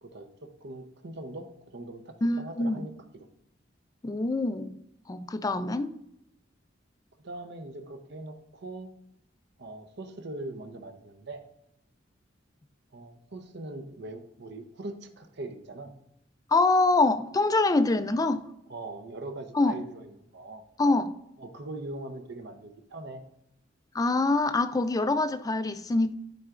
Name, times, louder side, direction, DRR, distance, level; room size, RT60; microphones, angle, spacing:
voice 1, 0.0-3.3 7.2-8.9 9.6-11.4 12.9-15.9 18.7-20.6 21.4-23.2, right 2 dB, 60° right, 0.8 m, -41 dB
voice 2, 2.2-2.8 4.0-4.7 5.1-5.9 16.5-18.5 19.5-19.8 20.8-21.1 23.9-26.1, left 2 dB, 20° left, 0.4 m, -25 dB
11.5 x 4.6 x 2.5 m
head